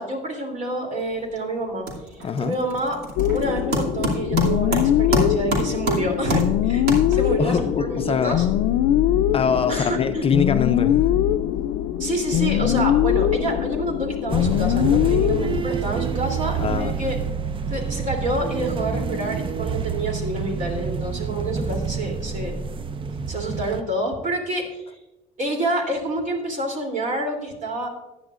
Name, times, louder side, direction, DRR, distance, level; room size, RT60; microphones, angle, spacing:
voice 1, 0.0-1.8 2.1-3.0 3.3-8.5 9.7-10.3 12.0-17.2 17.7-22.5 23.0-24.8 25.4-27.9, right 1 dB, 45° right, 3.0 m, -28 dB
sound 1, 1.0-1.4 1.6-7.5, right 1 dB, 75° right, 2.7 m, -28 dB
voice 2, 2.2-2.6 7.4-8.4 9.3-11.0 12.6-12.8 16.6-17.0, left 6 dB, 35° left, 0.5 m, -24 dB
sound 2, 3.2-15.6, left 11 dB, 85° left, 0.5 m, -22 dB
sound 3, 14.3-23.8, right 6 dB, 30° right, 0.5 m, -28 dB
15.0 x 10.0 x 2.5 m
cardioid pair, 110°, 17 cm